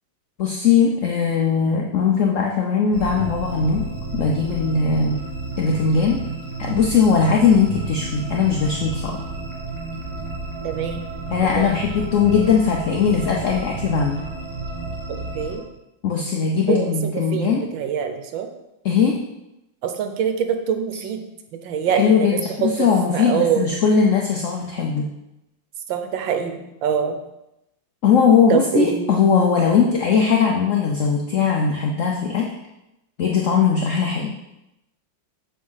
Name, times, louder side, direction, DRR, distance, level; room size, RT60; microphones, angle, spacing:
voice 1, 0.4-5.2 5.6-6.2 6.6-9.2 11.3-14.3 16.0-17.6 18.8-19.2 21.9-25.1 28.0-32.5 33.2-34.4, left 6 dB, 65° left, 0 dB, 0.7 m, -19 dB
sound 1, 2.9-15.6, right 3 dB, 60° right, 1.9 m, -31 dB
voice 2, 10.6-11.1 11.5-11.8 15.3-15.6 16.7-18.5 19.8-21.2 21.6-23.7 25.9-27.2 28.5-29.2, right 8 dB, 75° right, 7 dB, 1.5 m, -24 dB
7.7 x 3.6 x 5.5 m, 0.90 s
omnidirectional pair, 2.1 m